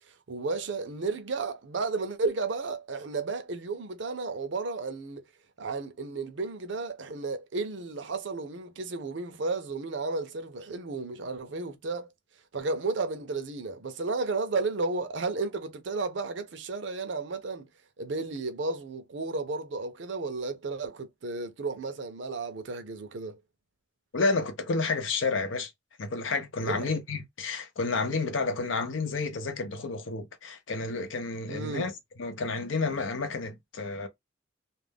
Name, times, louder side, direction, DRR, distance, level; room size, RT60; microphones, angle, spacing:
voice 1, 0.3-5.2 5.6-12.1 12.5-17.7 18.0-23.4 26.6-26.9 31.5-31.9, right 3 dB, 70° right, 0.6 m, -33 dB
voice 2, 24.1-25.7 26.0-31.9 32.2-34.1, left 3 dB, 90° left, 0.6 m, -30 dB
2.4 x 2.1 x 3.4 m
head